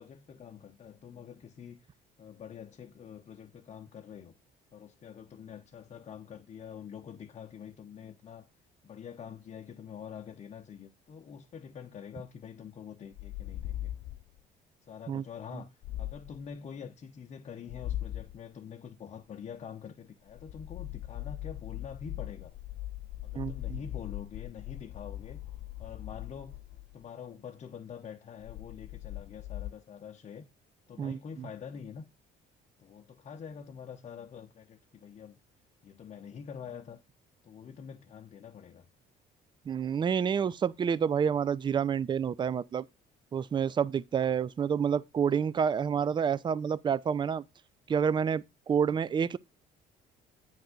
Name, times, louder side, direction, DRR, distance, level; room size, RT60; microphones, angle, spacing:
voice 1, 0.0-1.9 2.2-4.4 4.7-8.5 8.8-13.9 14.8-15.7 16.0-22.5 23.2-25.4 25.8-26.6 26.9-30.4 30.9-32.0 32.8-35.4 35.8-37.0 37.4-38.9, left 7 dB, 40° left, 0.8 m, -46 dB
sound 1, 13.1-14.4 15.8-16.4 17.7-18.4 20.3-27.0 28.4-29.7, left 14 dB, 65° left, 0.4 m, -40 dB
voice 2, 23.3-23.8 31.0-31.2 39.7-42.8 43.3-47.4 47.9-49.4, right 7 dB, 25° right, 0.4 m, -28 dB
9.1 x 3.5 x 6.5 m
cardioid pair, 110°, 17 cm